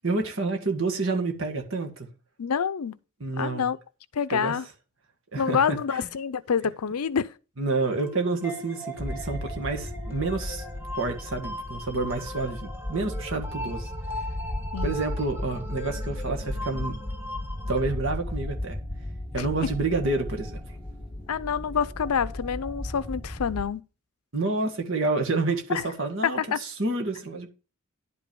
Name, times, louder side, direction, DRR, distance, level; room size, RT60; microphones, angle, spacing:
voice 1, 0.0-2.1 3.2-3.6 4.3-4.5 5.3-5.6 5.9-6.1 7.6-10.6 10.9-13.9 14.8-17.0 17.7-18.8 19.3-20.6 24.3-27.5, right 3 dB, 60° right, 1.7 m, -29 dB
voice 2, 2.4-3.0 3.4-3.8 4.1-4.7 5.4-7.3 13.6-13.7 14.7-15.0 19.4-19.5 21.3-23.8 25.7-25.8 26.2-26.6, left 7 dB, 85° left, 0.5 m, -27 dB
sound 1, 7.8-17.8, equal, 10° right, 1.6 m, -39 dB
sound 2, 9.0-23.7, left 1 dB, 15° left, 1.3 m, -35 dB
10.5 x 5.4 x 5.2 m
head